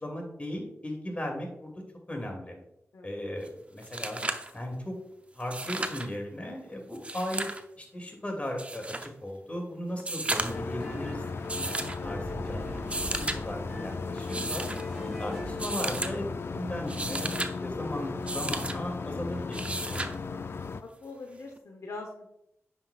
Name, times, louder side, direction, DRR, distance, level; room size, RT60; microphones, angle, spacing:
voice 1, 0.0-1.8 2.1-2.6 3.0-4.2 4.5-4.9 5.3-7.5 7.8-11.2 11.6-14.7 15.0-17.4 17.6-20.2, left 1 dB, 25° left, 1 dB, 2.5 m, -37 dB
sound 1, 3.4-3.5 3.8-4.5 5.4-6.1 6.9-7.6 8.6-9.1 10.0-10.7 11.5-12.0 12.8-13.4 14.2-14.8 15.6-16.1 16.7-17.5 18.3-18.8 19.5-20.1 21.6-21.7, right 2 dB, 25° right, 0.7 m, -34 dB
sound 2, 10.3-16.1, right 1 dB, 5° left, 2.9 m, -42 dB
sound 3, 10.5-20.8, left 4 dB, 55° left, 0.4 m, -36 dB
voice 2, 20.8-22.3, left 3 dB, 75° left, 1 dB, 1.0 m, -42 dB
9.5 x 5.8 x 2.4 m, 0.79 s
cardioid pair, 65°, 5 cm